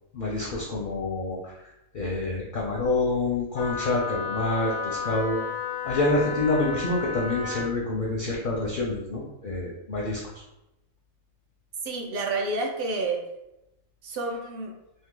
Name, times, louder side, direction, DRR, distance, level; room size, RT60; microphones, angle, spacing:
voice 1, 0.1-1.5 1.9-5.4 5.8-10.2, left 2 dB, 60° left, -2 dB, 0.5 m, -27 dB
Wind instrument woodwind instrument, 3.5-7.7, left 6 dB, 90° left, 1.0 m, -33 dB
voice 2, 11.8-13.2 14.0-14.7, right 3 dB, 65° right, 1 dB, 0.6 m, -29 dB
2.8 x 2.6 x 3.7 m, 0.90 s
omnidirectional pair, 1.4 m